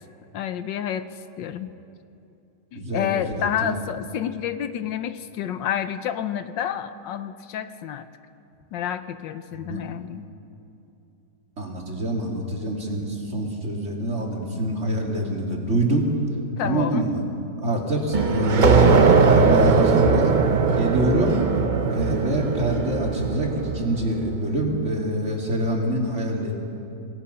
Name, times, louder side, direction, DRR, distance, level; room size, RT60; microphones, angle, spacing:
voice 1, 0.3-1.1 1.4-1.7 2.7-8.1 8.7-10.3 16.6-17.1, left 9 dB, 75° left, 11 dB, 1.4 m, -29 dB
voice 2, 2.7-3.8 9.5-9.8 11.6-16.1 16.6-17.2 17.6-20.4 20.8-21.4 21.9-26.5, right 1 dB, 40° right, -1 dB, 2.9 m, -25 dB
sound 1, 18.1-24.5, right 5 dB, 75° right, 0.4 m, -20 dB
26.5 x 18.5 x 5.6 m, 2.7 s
omnidirectional pair, 2.0 m